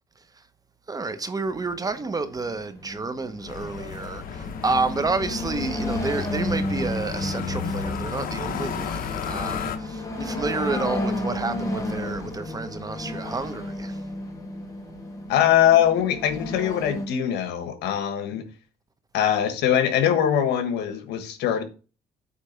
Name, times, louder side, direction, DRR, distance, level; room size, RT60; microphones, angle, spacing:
voice 1, 0.9-14.0, right 3 dB, 20° right, 0.9 m, -30 dB
sound 1, 1.5-17.1, left 1 dB, 20° left, 1.8 m, -33 dB
sound 2, 3.5-9.8, left 7 dB, 60° left, 1.0 m, -33 dB
voice 2, 15.3-18.5 19.1-21.6, left 10 dB, 80° left, 1.4 m, -22 dB
8.2 x 3.3 x 5.7 m
cardioid pair, 110°, 17 cm